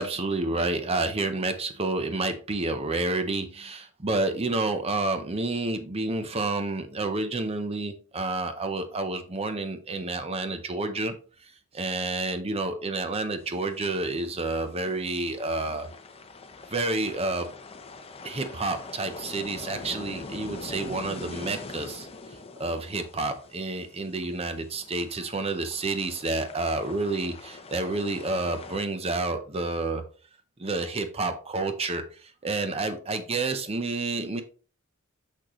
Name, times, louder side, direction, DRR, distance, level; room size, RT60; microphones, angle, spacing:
voice 1, 0.0-11.2 11.4-15.9 16.7-17.5 18.2-22.1 22.6-30.0 30.6-34.4, right 2 dB, 30° right, 8 dB, 0.6 m, -29 dB
sound 1, 13.4-28.8, left 3 dB, 30° left, 0.7 m, -44 dB
6.4 x 6.2 x 3.0 m, 0.38 s
head